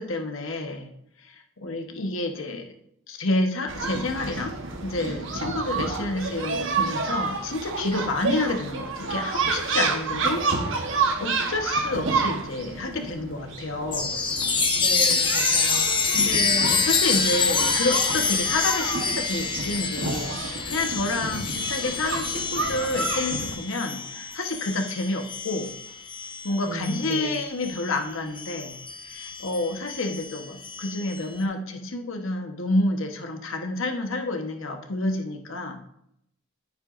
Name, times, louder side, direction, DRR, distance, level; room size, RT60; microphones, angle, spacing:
voice 1, 0.0-2.7 3.1-4.5 4.8-10.4 10.7-14.2 16.1-25.7 26.4-35.8, left 2 dB, 70° left, 4 dB, 1.2 m, -29 dB
sound 1, 3.7-23.6, right 4 dB, 60° right, 1.2 m, -30 dB
Chime, 13.9-27.9 28.3-31.2, left 5 dB, 20° left, 1.0 m, -27 dB
voice 2, 14.8-15.9 26.6-27.4, equal, 35° right, -3 dB, 3.8 m, -35 dB
10.5 x 9.0 x 2.6 m, 0.75 s
head